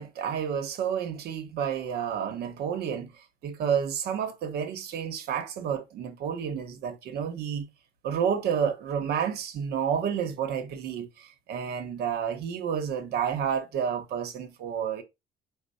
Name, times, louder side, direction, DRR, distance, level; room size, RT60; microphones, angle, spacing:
voice 1, 0.0-3.1 3.4-7.7 8.0-15.0, right 8 dB, 70° right, 0.9 m, -30 dB
4.4 x 2.0 x 3.9 m
cardioid pair, 110°, 17 cm